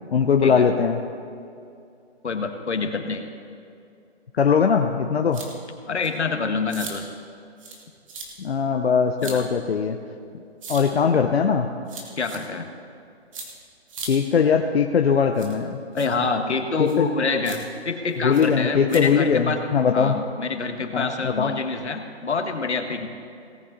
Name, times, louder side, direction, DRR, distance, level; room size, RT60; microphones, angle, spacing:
voice 1, 0.1-1.0 4.3-5.4 8.4-10.0 10.7-11.7 14.1-15.8 16.8-17.1 18.2-20.1 20.9-21.5, left 6 dB, 65° left, 4 dB, 0.8 m, -20 dB
voice 2, 2.2-3.3 5.9-7.1 9.2-9.5 11.1-11.2 12.2-12.7 15.9-19.6 19.9-23.1, left 4 dB, 85° left, 6 dB, 1.6 m, -26 dB
sound 1, 5.3-5.5 6.0-6.1 6.7-6.9 7.6-8.3 9.2-9.4 10.6-10.8 11.9-12.4 13.3-13.5 13.9-14.1 15.3-15.5 16.0-16.1 16.9-17.0 17.4-17.6 18.3-18.5 18.9-19.0, right 4 dB, 30° right, 1.7 m, -37 dB
18.5 x 8.6 x 4.0 m, 2.5 s
hypercardioid pair, 165°, 33 cm